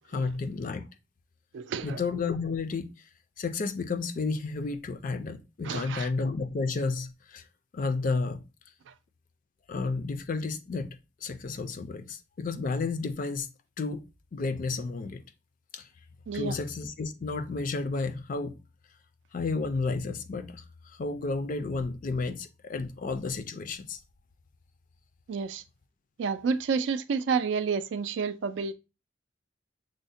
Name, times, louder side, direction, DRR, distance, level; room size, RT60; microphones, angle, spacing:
voice 1, 0.1-0.9 1.8-2.9 3.4-7.4 7.7-8.4 9.7-13.5 13.8-14.0 14.3-15.2 15.7-15.9 16.3-18.5 19.3-24.0, left 3 dB, 45° left, 0.4 m, -32 dB
voice 2, 1.5-2.0 5.6-6.1 8.9-9.0 16.3-16.6 25.3-25.6 26.2-28.7, right 5 dB, 75° right, 0.3 m, -30 dB
6.2 x 2.1 x 2.6 m
head